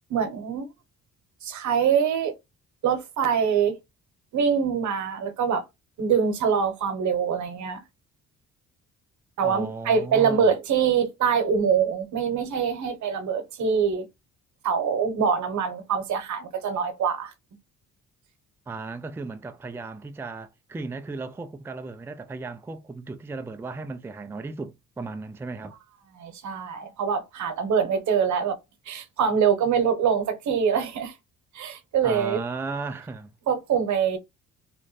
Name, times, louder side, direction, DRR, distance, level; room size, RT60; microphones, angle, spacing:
voice 1, 0.1-0.7 1.4-2.3 2.8-3.8 4.3-5.6 6.0-7.8 9.4-14.1 14.6-17.3 26.2-28.5 28.9-31.1 31.5-32.4 33.5-34.2, right 7 dB, 70° right, 1.0 m, -24 dB
voice 2, 9.4-10.5 18.7-25.7 32.0-33.3, right 3 dB, 10° right, 0.4 m, -35 dB
3.1 x 2.5 x 4.0 m
cardioid pair, 90°, 30 cm